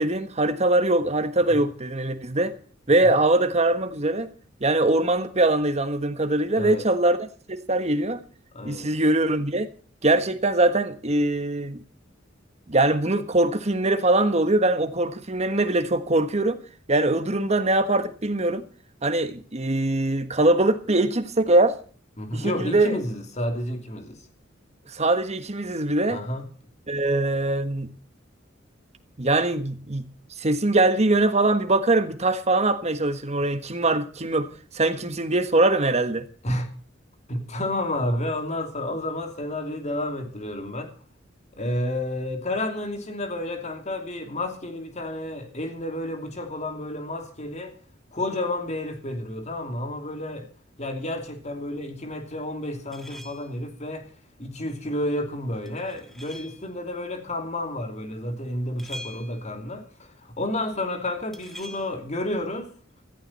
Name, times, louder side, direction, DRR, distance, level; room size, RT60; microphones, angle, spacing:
voice 1, 0.0-2.5 2.9-4.3 4.6-8.2 8.6-9.7 10.0-11.8 12.7-16.6 16.9-18.6 19.0-21.8 22.3-23.0 24.9-26.2 26.9-27.9 29.2-30.0 30.4-34.5 34.7-36.2, right 2 dB, 35° right, 1.4 m, -22 dB
voice 2, 6.5-6.9 8.5-8.9 22.2-24.2 26.1-26.4 36.4-36.7 37.3-40.9 41.6-47.8 48.1-50.5 50.8-54.1 54.4-62.7, left 1 dB, 35° left, 2.9 m, -30 dB
sound 1, 52.9-53.7 55.7-56.7 58.8-59.6 61.3-61.9, left 1 dB, ahead, 1.8 m, -43 dB
16.0 x 14.5 x 4.3 m
head